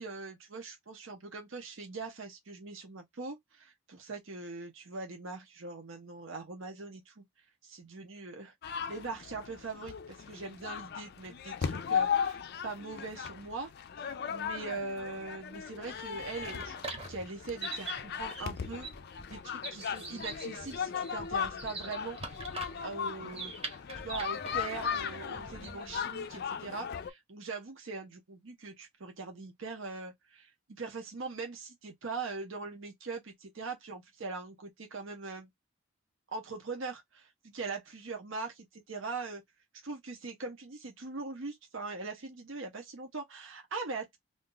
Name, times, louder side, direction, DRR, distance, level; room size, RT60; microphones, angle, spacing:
voice 1, 0.0-7.2 7.6-8.5 8.9-13.7 14.3-22.2 22.8-23.5 24.0-30.5 30.8-35.5 36.3-38.5 38.9-39.4 39.8-44.2, right 3 dB, 65° right, 0.7 m, -41 dB
sound 1, 8.6-27.1, left 7 dB, 50° left, 0.4 m, -37 dB
sound 2, 15.8-26.1, right 3 dB, 30° right, 0.9 m, -44 dB
2.6 x 2.3 x 3.7 m
head